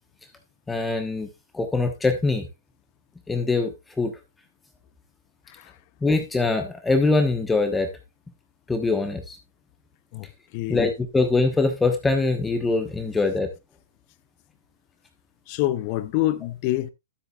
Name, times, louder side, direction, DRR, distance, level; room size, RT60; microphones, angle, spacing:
voice 1, 0.7-1.3 1.5-2.4 3.3-3.7 4.0-4.1 6.0-7.9 8.7-9.4 10.7-13.5, left 3 dB, 10° left, 1.2 m, -23 dB
voice 2, 5.5-5.8 10.1-10.9 15.5-16.9, left 15 dB, 40° left, 0.7 m, -27 dB
13.0 x 8.1 x 2.4 m
hypercardioid pair, 125°, 0 cm